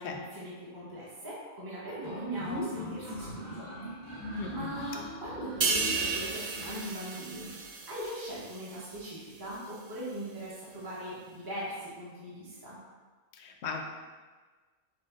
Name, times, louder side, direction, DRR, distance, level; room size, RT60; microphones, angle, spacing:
voice 1, 0.0-3.6 4.5-7.5 7.9-12.8, equal, 20° right, -9 dB, 0.8 m, -40 dB
sound 1, 2.0-6.8, equal, 40° right, 1.2 m, -41 dB
voice 2, 4.4-4.7 13.3-13.8, left 3 dB, 70° left, 3 dB, 0.8 m, -36 dB
sound 2, 5.6-9.1 9.5-9.7, right 4 dB, 60° right, 0.5 m, -34 dB
6.1 x 2.2 x 3.6 m, 1.4 s
omnidirectional pair, 1.3 m